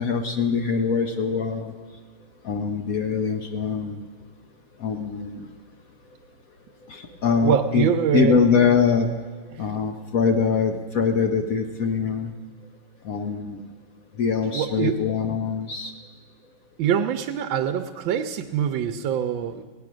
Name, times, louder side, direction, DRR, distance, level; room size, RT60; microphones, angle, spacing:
voice 1, 0.0-1.7 2.4-4.0 4.8-5.5 6.9-7.9 8.1-9.1 9.6-12.3 13.0-13.7 14.1-15.9, left 6 dB, 60° left, 5 dB, 0.9 m, -23 dB
voice 2, 7.4-8.3 14.5-15.0 16.8-19.6, right 8 dB, 75° right, 5 dB, 1.3 m, -24 dB
17.0 x 9.1 x 6.1 m, 1.5 s
omnidirectional pair, 2.2 m